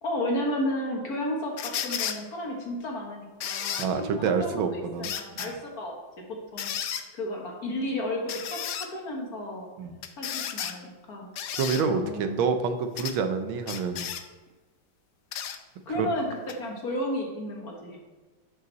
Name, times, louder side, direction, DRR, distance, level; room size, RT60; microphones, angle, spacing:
voice 1, 0.0-5.9 6.5-6.7 7.1-9.7 10.2-11.3 11.8-12.4 15.8-16.2 16.6-18.0, left 1 dB, 50° left, 0 dB, 1.8 m, -33 dB
sound 1, 1.6-2.2 3.4-3.9 5.0-5.5 6.6-7.0 8.3-8.9 10.0-10.8 11.4-11.8 13.0-13.2 13.7-14.2 15.3-15.6 16.5-16.6, left 9 dB, 75° left, 0.8 m, -33 dB
voice 2, 3.8-5.1 5.4-5.5 9.8-10.0 11.5-14.1 16.0-16.1, right 5 dB, 90° right, 7 dB, 1.6 m, -27 dB
10.5 x 5.5 x 4.0 m, 1.3 s
omnidirectional pair, 2.2 m